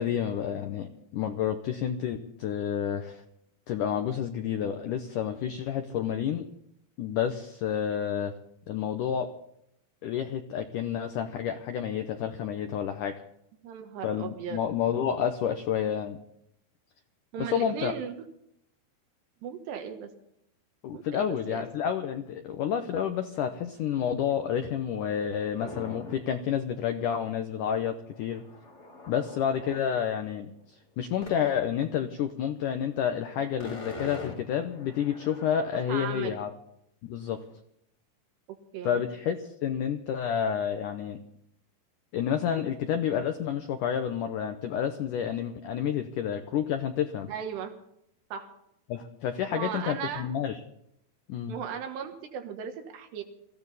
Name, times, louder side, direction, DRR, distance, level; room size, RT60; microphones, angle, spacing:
voice 1, 0.0-3.2 3.7-6.5 7.0-8.3 8.7-9.3 10.0-13.2 14.0-16.2 17.4-17.9 20.8-28.4 29.1-30.5 31.0-36.5 37.1-37.4 38.8-41.2 42.1-47.3 48.9-50.6 51.3-51.5, left 8 dB, 85° left, 7 dB, 1.8 m, -29 dB
voice 2, 13.6-14.6 17.3-18.2 19.4-20.1 20.9-21.7 35.7-36.4 38.7-39.0 47.3-47.7 48.3-48.5 49.5-50.3 51.5-53.2, right 7 dB, 80° right, 6 dB, 3.5 m, -37 dB
sound 1, 25.6-26.3 26.7-26.8 27.0-29.8 31.2-31.5 31.8-31.9 33.0-33.2 33.5-36.1, left 3 dB, 40° left, 0.9 m, -44 dB
23.0 x 15.0 x 4.1 m, 0.75 s
omnidirectional pair, 4.9 m